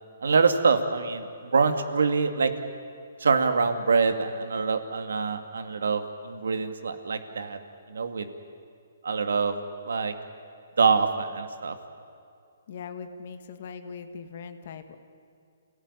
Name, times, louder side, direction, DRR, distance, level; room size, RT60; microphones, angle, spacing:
voice 1, 0.2-1.3 1.5-2.5 3.2-7.6 7.9-8.3 9.0-9.5 9.8-10.1 10.8-11.8, right 5 dB, 85° right, 8 dB, 2.4 m, -24 dB
voice 2, 12.7-15.0, left 6 dB, 45° left, 8 dB, 1.9 m, -40 dB
29.5 x 17.5 x 10.0 m, 2.4 s
hypercardioid pair, 170°, 0 cm